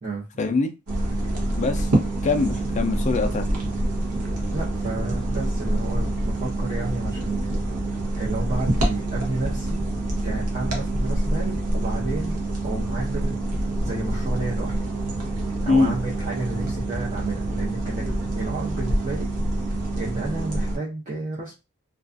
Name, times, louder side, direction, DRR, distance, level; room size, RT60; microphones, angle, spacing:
voice 1, 0.4-0.7 1.6-1.9 2.2-3.4 15.7-16.0, left 3 dB, 35° left, 7 dB, 0.3 m, -22 dB
sound 1, 0.9-20.8, right 1 dB, 80° right, 0.8 m, -26 dB
voice 2, 4.5-7.4 8.2-9.8 10.2-13.4 13.8-14.7 15.6-19.3 19.9-21.6, right 2 dB, 35° right, -6 dB, 0.7 m, -31 dB
2.3 x 2.3 x 2.5 m, 0.27 s
head